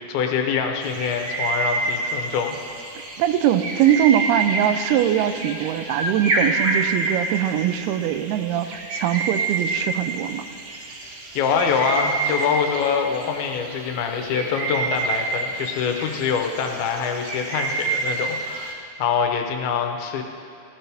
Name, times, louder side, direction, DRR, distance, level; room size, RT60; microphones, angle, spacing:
voice 1, 0.0-2.6 11.4-20.2, left 6 dB, 80° left, 4 dB, 2.7 m, -24 dB
sound 1, 0.8-18.7, right 3 dB, 70° right, 1.2 m, -28 dB
voice 2, 3.2-10.5, right 11 dB, 90° right, 10 dB, 2.6 m, -22 dB
15.5 x 15.0 x 3.5 m, 2.4 s
omnidirectional pair, 4.4 m